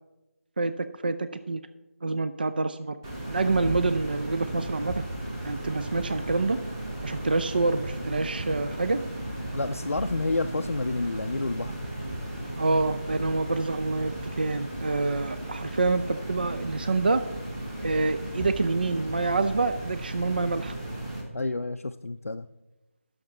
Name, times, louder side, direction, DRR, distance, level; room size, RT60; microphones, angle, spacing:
voice 1, 0.6-1.6 2.0-3.0 3.3-5.0 5.4-6.6 7.0-9.0 12.6-17.2 17.8-20.7, right 3 dB, 40° right, 11 dB, 0.4 m, -27 dB
sound 1, 3.0-21.2, right 1 dB, 15° right, 1.4 m, -35 dB
voice 2, 9.5-11.8 21.3-22.5, left 2 dB, 70° left, 6 dB, 0.4 m, -29 dB
11.5 x 6.6 x 5.9 m, 1.0 s
figure-of-eight pair, 160°, 8 cm